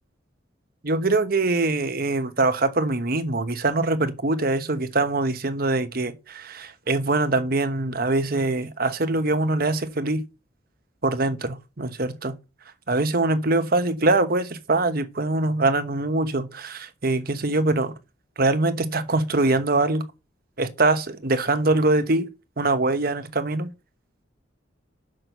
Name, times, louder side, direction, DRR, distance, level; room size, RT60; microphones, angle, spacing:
voice 1, 0.8-10.2 11.0-12.3 12.9-17.9 18.4-20.0 20.6-22.3 22.6-23.7, right 2 dB, 50° right, 1.1 m, -23 dB
6.5 x 6.1 x 6.8 m
head